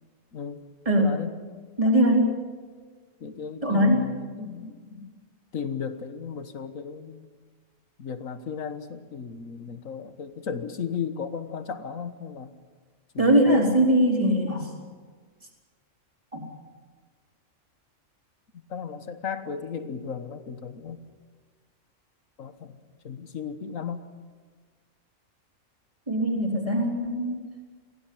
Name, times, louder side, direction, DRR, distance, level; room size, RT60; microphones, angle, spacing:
voice 1, 0.3-0.6 1.0-1.3 3.2-5.1 5.5-7.3 8.0-12.5 13.1-13.9 18.5-21.0 22.4-22.8 23.0-24.0, left 6 dB, 90° left, 10 dB, 1.7 m, -35 dB
voice 2, 1.8-2.4 3.6-4.1 13.2-14.7 16.3-16.4 26.1-27.5, equal, 25° right, 0 dB, 4.1 m, -21 dB
23.0 x 16.5 x 8.6 m, 1.5 s
omnidirectional pair, 1.3 m